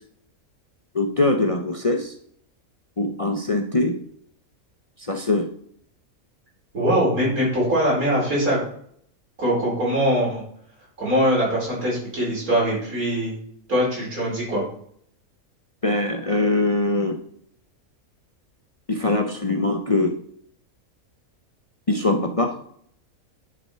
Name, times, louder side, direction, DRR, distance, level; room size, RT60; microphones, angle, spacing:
voice 1, 0.9-2.1 3.0-4.0 5.0-5.5 15.8-17.2 18.9-20.1 21.9-22.5, left 2 dB, 30° left, 4 dB, 0.7 m, -22 dB
voice 2, 6.7-8.6 9.4-10.4 11.0-13.3 13.7-14.6, equal, 90° right, -5 dB, 5.1 m, -22 dB
10.5 x 6.1 x 4.5 m, 0.63 s
omnidirectional pair, 1.5 m